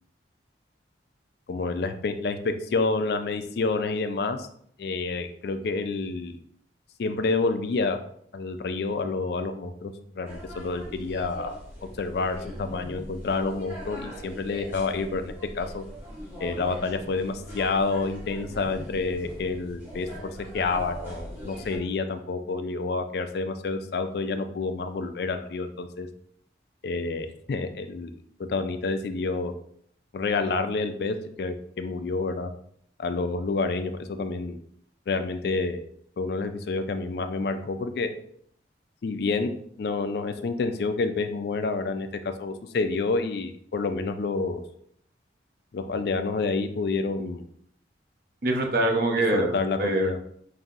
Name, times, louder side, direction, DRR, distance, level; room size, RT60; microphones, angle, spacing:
voice 1, 1.5-4.5 4.8-6.4 7.0-8.0 8.3-11.5 12.0-15.8 16.4-26.1 26.8-28.1 28.4-29.5 30.1-32.5 33.0-34.6 35.1-35.8 36.2-38.1 39.0-39.5 39.8-44.6 45.7-47.4 49.3-50.2, left 3 dB, 55° left, 8 dB, 0.3 m, -28 dB
sound 1, 10.2-21.8, equal, 10° right, 1.0 m, -41 dB
voice 2, 48.4-50.2, right 2 dB, 50° right, 2 dB, 0.6 m, -24 dB
5.3 x 2.6 x 2.5 m, 0.65 s
head